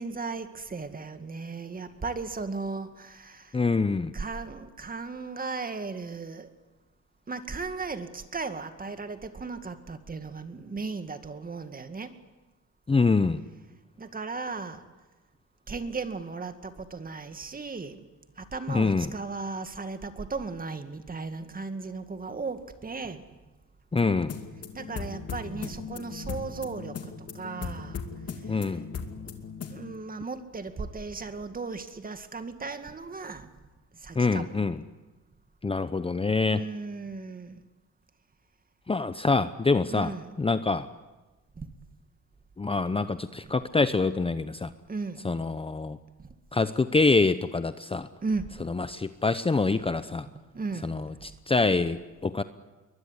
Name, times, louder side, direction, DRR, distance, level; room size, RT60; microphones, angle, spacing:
voice 1, 0.0-3.6 4.1-6.5 7.3-12.1 14.0-14.8 15.7-18.1 18.4-23.2 24.7-28.0 28.4-28.7 29.3-29.4 29.7-33.5 34.0-34.6 36.5-37.6 39.9-40.4 41.6-41.7 44.9-45.4 46.2-46.3 48.2-48.5 50.5-51.0, right 4 dB, 30° right, 9 dB, 2.1 m, -36 dB
voice 2, 3.5-4.1 12.9-13.4 18.7-19.1 23.9-24.3 28.5-28.8 34.1-34.8 35.6-36.6 38.9-40.9 42.6-44.7 45.2-46.0 46.5-48.1 48.7-50.3 50.8-52.4, left 3 dB, 20° left, 12 dB, 0.8 m, -25 dB
sound 1, 24.0-29.9, left 5 dB, 55° left, 2.5 m, -38 dB
22.5 x 20.5 x 9.8 m, 1.2 s
cardioid pair, 90°, 30 cm